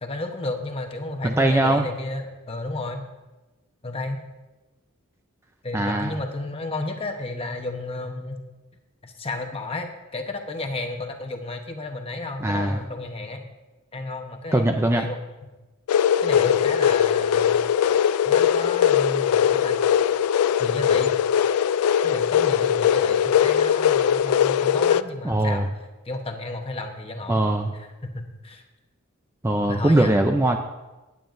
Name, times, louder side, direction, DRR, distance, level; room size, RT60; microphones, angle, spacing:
voice 1, 0.0-3.0 3.8-4.2 5.6-8.4 9.0-13.5 13.9-15.5 16.2-17.6 18.2-19.8 20.6-21.2 22.0-25.6 26.0-27.4 27.7-28.6 29.7-30.1, left 2 dB, 25° left, 4 dB, 1.0 m, -32 dB
voice 2, 1.2-1.9 5.7-6.1 12.4-12.9 14.5-15.1 25.2-25.7 27.3-27.7 29.4-30.6, right 1 dB, 10° right, 4 dB, 0.4 m, -21 dB
sound 1, 15.9-25.0, left 9 dB, 75° left, 0.3 m, -20 dB
18.0 x 8.9 x 2.6 m, 1.1 s
head